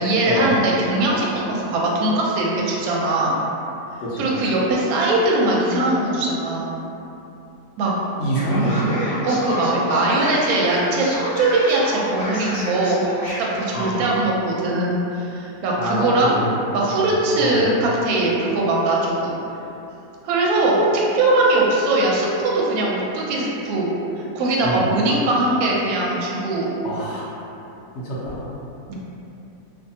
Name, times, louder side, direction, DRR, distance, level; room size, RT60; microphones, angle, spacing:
voice 1, 0.0-3.3 4.2-6.8 7.8-7.9 9.2-13.1 13.5-16.4 16.7-19.3 20.2-26.8 28.9-29.0, right 2 dB, 70° right, -4 dB, 0.9 m, -20 dB
voice 2, 8.2-9.0 13.7-14.0 15.8-16.5 16.9-17.1 17.4-17.7 24.6-24.8 26.8-27.3 28.0-28.4, right 1 dB, 75° left, -8 dB, 0.6 m, -25 dB
Male speech man speaking, 8.3-14.2, equal, 50° left, 0.9 m, -31 dB
2.6 x 2.4 x 2.7 m, 2.9 s
omnidirectional pair, 1.8 m